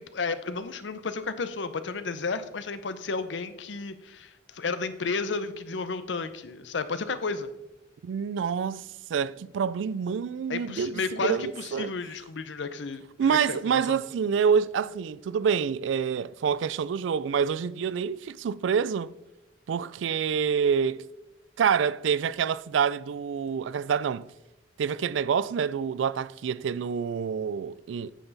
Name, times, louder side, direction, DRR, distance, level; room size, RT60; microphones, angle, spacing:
voice 1, 0.1-7.5 10.5-14.0, left 4 dB, 75° left, 0.7 m, -32 dB
voice 2, 8.0-11.9 13.2-19.1 19.7-21.0 21.6-24.3 24.8-28.1, right 7 dB, 85° right, 0.3 m, -27 dB
9.0 x 6.9 x 4.0 m
head